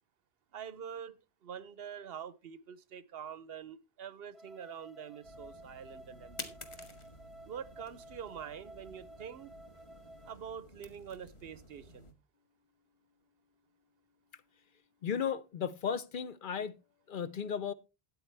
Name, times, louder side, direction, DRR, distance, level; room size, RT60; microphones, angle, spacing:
voice 1, 0.5-6.5 7.4-9.5 10.2-12.1, right 8 dB, 70° right, 1.0 m, -45 dB
sound 1, 4.3-10.3, right 1 dB, ahead, 0.5 m, -54 dB
sound 2, 5.2-12.1, left 1 dB, 30° left, 1.5 m, -51 dB
voice 2, 15.0-16.8 17.1-17.7, left 7 dB, 55° left, 0.8 m, -35 dB
13.0 x 9.3 x 3.3 m
omnidirectional pair, 1.0 m